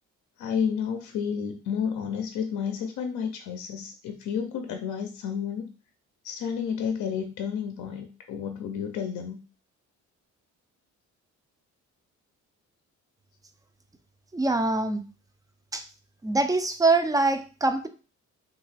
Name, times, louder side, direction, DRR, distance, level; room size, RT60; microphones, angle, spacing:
voice 1, 0.4-5.7 6.2-9.4, left 7 dB, 70° left, 6 dB, 0.5 m, -31 dB
voice 2, 14.3-15.0 15.7-15.8 16.2-17.9, right 3 dB, 10° right, 8 dB, 0.3 m, -24 dB
2.7 x 2.3 x 3.3 m, 0.35 s
cardioid pair, 90°, 30 cm